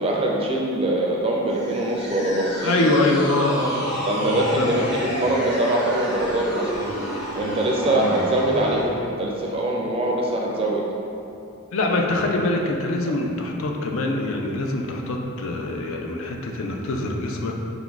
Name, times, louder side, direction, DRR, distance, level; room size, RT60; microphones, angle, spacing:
voice 1, 0.0-2.8 4.0-6.7 7.3-10.8 13.0-13.2, right 1 dB, 25° right, -2 dB, 0.4 m, -23 dB
sound 1, 1.5-8.9, equal, 30° left, 1.0 m, -30 dB
voice 2, 2.6-4.8 6.8-7.0 7.4-7.6 7.9-8.2 11.7-17.5, left 2 dB, 65° left, 1 dB, 0.4 m, -24 dB
3.9 x 3.8 x 2.4 m, 2.8 s
head